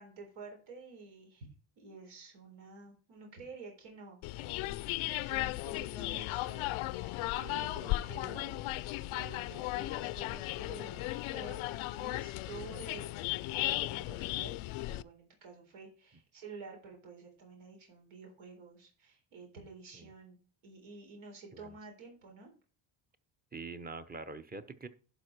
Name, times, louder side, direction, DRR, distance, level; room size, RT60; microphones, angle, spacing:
voice 1, 0.0-1.5 1.8-20.4 20.6-22.5, right 4 dB, 80° right, 1 dB, 4.0 m, -50 dB
sound 1, 4.2-15.0, left 18 dB, 85° left, 0.6 m, -36 dB
voice 2, 23.5-24.9, right 3 dB, 20° right, 11 dB, 0.8 m, -45 dB
11.5 x 5.4 x 4.6 m, 0.38 s
cardioid pair, 135°, 47 cm